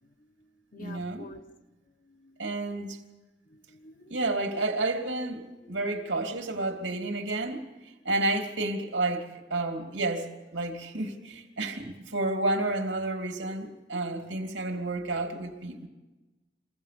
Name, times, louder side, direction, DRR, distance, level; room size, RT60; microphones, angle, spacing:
voice 1, 0.2-1.4 2.0-2.9 3.5-4.3 5.6-6.1, left 2 dB, 45° left, 1.1 m, -50 dB
voice 2, 0.8-1.3 2.4-3.0 4.1-7.7 8.0-15.9, right 2 dB, 75° right, 2.9 m, -31 dB
24.5 x 17.0 x 6.9 m
head